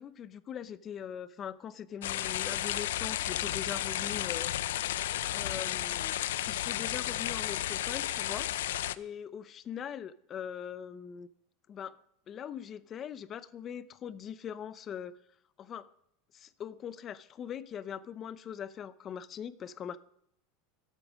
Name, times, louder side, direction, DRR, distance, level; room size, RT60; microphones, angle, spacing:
voice 1, 0.0-4.5 5.3-6.2 6.5-8.5 9.0-11.3 11.7-12.0 12.3-15.2 15.6-15.9 16.3-20.0, left 8 dB, 30° left, 0.6 m, -41 dB
sound 1, 2.0-9.0, left 13 dB, 85° left, 0.4 m, -33 dB
12.0 x 8.3 x 6.3 m
supercardioid pair, 145°, 0 cm